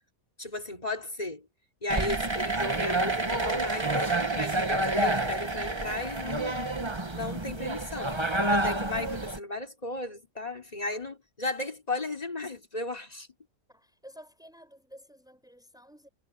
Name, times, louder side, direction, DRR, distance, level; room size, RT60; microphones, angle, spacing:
voice 1, 0.4-1.5 1.8-6.6 7.1-8.2 8.5-13.3, left 2 dB, 25° left, 3.4 m, -35 dB
sound 1, 1.9-9.4, right 2 dB, 20° right, 1.3 m, -29 dB
voice 2, 13.7-16.1, equal, ahead, 7.9 m, -52 dB
omnidirectional pair, 1.7 m